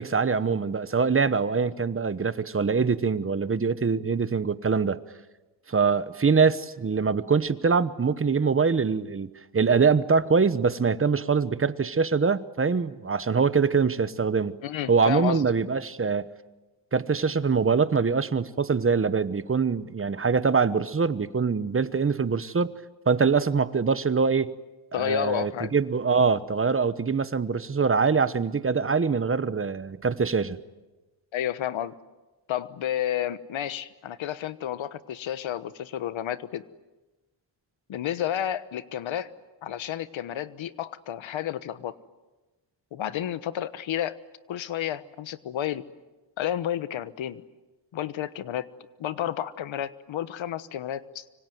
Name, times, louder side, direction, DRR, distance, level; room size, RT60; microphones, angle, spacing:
voice 1, 0.0-5.0 5.7-14.5 14.9-16.3 16.9-22.7 23.1-24.5 24.9-30.6, right 5 dB, 30° right, 14 dB, 1.1 m, -24 dB
voice 2, 14.6-15.4 24.9-25.7 31.3-31.9 32.5-36.6 37.9-39.3 39.6-41.9 42.9-44.2 44.5-45.8 46.4-47.4 47.9-48.7 49.0-51.2, left 11 dB, 85° left, 15 dB, 1.3 m, -31 dB
25.5 x 25.0 x 9.3 m, 1.1 s
cardioid pair, 105°, 46 cm